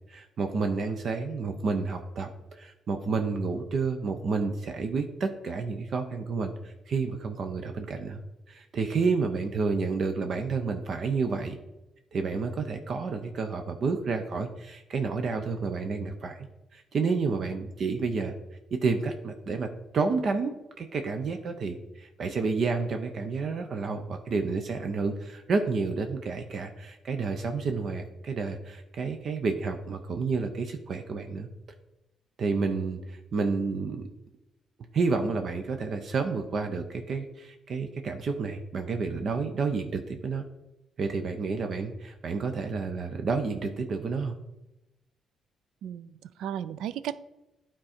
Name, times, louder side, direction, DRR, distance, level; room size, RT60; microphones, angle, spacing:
voice 1, 0.1-8.2 8.5-11.6 12.1-16.5 16.7-18.3 18.7-31.5 32.4-34.0 34.9-40.4 41.0-44.3, right 4 dB, 55° right, 6 dB, 0.7 m, -30 dB
voice 2, 45.8-47.2, right 10 dB, 85° right, 16 dB, 0.3 m, -35 dB
9.6 x 3.8 x 4.3 m, 0.94 s
cardioid pair, 90°, 0 cm